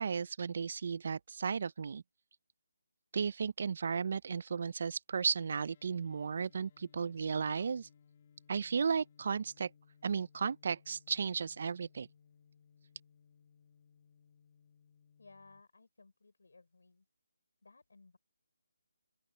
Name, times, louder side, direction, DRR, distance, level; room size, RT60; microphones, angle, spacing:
voice 1, 0.0-2.0 3.1-7.9 8.5-9.7 10.0-12.1, right 6 dB, 50° right, 0.7 m, -34 dB
sound 1, 5.1-15.6, left 7 dB, 40° left, 1.8 m, -65 dB
voice 2, 15.2-17.1 17.6-18.2, left 3 dB, 80° left, 4.7 m, -60 dB
open air
hypercardioid pair, 165°, 0 cm